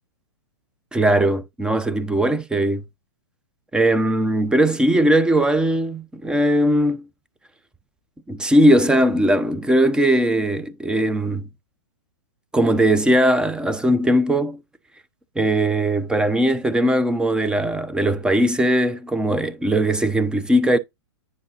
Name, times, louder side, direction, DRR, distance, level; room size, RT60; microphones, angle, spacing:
voice 1, 0.9-2.8 3.7-7.0 8.3-11.5 12.5-14.6 15.4-20.8, right 1 dB, 5° right, 0.6 m, -19 dB
9.6 x 4.8 x 2.8 m
hypercardioid pair, 115°, 15 cm